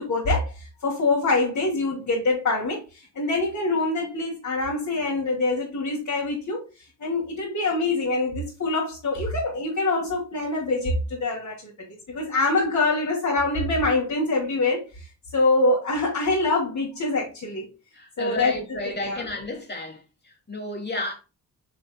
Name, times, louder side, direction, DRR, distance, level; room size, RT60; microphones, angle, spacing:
voice 1, 0.0-6.6 7.0-11.7 12.1-17.7 18.2-19.3, left 2 dB, 55° left, 3.2 m, -25 dB
voice 2, 17.9-20.0 20.2-21.1, left 2 dB, 25° left, 2.8 m, -32 dB
9.6 x 5.0 x 2.4 m
cardioid pair, 100°, 37 cm